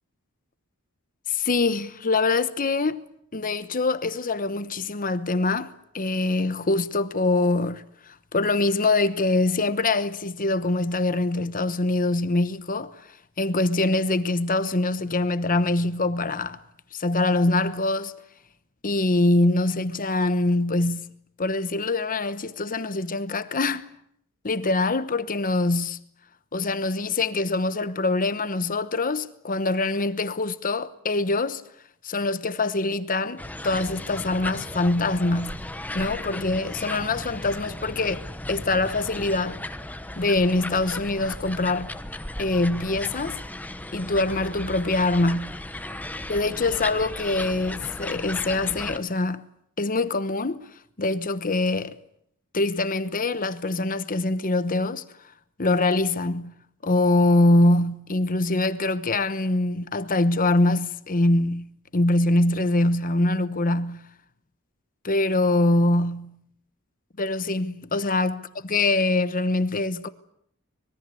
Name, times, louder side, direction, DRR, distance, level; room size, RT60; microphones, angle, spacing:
voice 1, 1.3-3.0 3.3-13.1 13.4-16.6 16.9-18.2 18.8-21.1 21.4-23.9 24.4-26.0 26.5-31.6 32.0-35.6 35.9-39.6 40.2-41.9 42.4-43.4 43.9-45.6 46.3-49.4 49.8-50.6 51.0-52.0 52.5-55.0 55.6-64.1 65.0-66.4 67.2-68.4 68.7-70.1, left 2 dB, 40° left, 1.0 m, -24 dB
sound 1, 33.4-49.0, left 1 dB, 5° left, 1.1 m, -36 dB
25.0 x 22.0 x 8.4 m
head